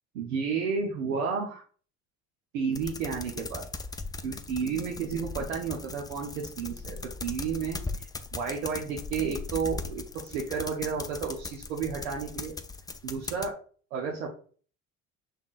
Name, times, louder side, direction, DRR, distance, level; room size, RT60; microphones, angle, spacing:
voice 1, 0.1-1.6 2.5-3.6 4.2-12.6 13.0-13.5 13.9-14.3, right 5 dB, 85° right, -2 dB, 0.8 m, -32 dB
sound 1, 2.7-13.5, left 3 dB, 10° left, 0.3 m, -39 dB
5.8 x 3.6 x 2.5 m, 0.44 s
hypercardioid pair, 70°, 38 cm